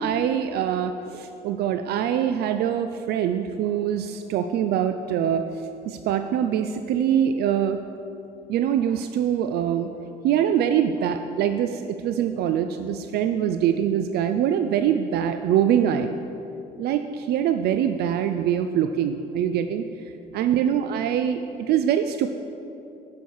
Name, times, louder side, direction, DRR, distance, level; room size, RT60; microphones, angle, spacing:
voice 1, 0.0-5.4 5.9-7.8 8.5-9.9 10.2-16.2 16.8-19.8 20.3-21.4 21.7-22.3, right 9 dB, 70° right, 8 dB, 0.4 m, -23 dB
10.5 x 6.1 x 4.8 m, 2.9 s
cardioid pair, 110°, 17 cm